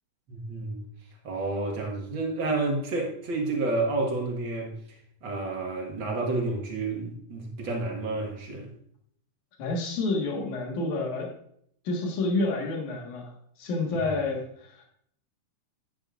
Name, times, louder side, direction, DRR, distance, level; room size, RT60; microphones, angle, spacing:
voice 1, 0.3-0.8 1.2-4.7 5.2-8.7 13.9-14.2, right 2 dB, 45° right, 2.1 m, -30 dB
voice 2, 9.6-11.3 11.8-13.3 13.6-14.8, left 2 dB, 75° left, 3.1 m, -29 dB
10.5 x 9.3 x 2.5 m
omnidirectional pair, 3.5 m